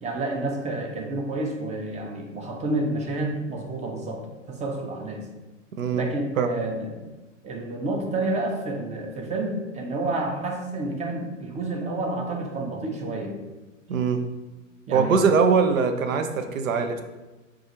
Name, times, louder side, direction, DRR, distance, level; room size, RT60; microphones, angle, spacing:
voice 1, 0.0-4.2 4.5-5.3 5.9-7.0 7.4-13.3 14.9-15.4, right 2 dB, 20° right, 2 dB, 0.5 m, -29 dB
voice 2, 5.7-6.0 6.4-6.5 13.9-14.2 14.9-17.0, right 5 dB, 85° right, 7 dB, 0.5 m, -22 dB
3.8 x 2.4 x 2.9 m, 1.1 s
hypercardioid pair, 100°, 39 cm